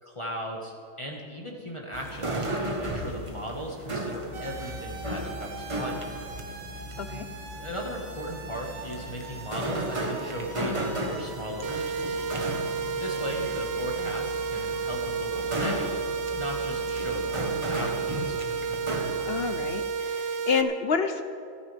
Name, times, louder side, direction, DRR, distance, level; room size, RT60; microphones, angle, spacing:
voice 1, 0.0-6.1 7.6-12.2 13.0-15.8 16.3-18.4, equal, 20° left, -2 dB, 1.5 m, -37 dB
sound 1, 1.9-19.8, right 1 dB, 25° right, 1.2 m, -35 dB
sound 2, 4.3-18.8, right 4 dB, 70° right, 1.6 m, -45 dB
sound 3, 11.6-20.6, right 5 dB, 55° right, 0.9 m, -31 dB
voice 2, 19.2-21.2, left 5 dB, 55° left, 7 dB, 0.8 m, -28 dB
28.5 x 10.0 x 3.4 m, 2.4 s
omnidirectional pair, 1.5 m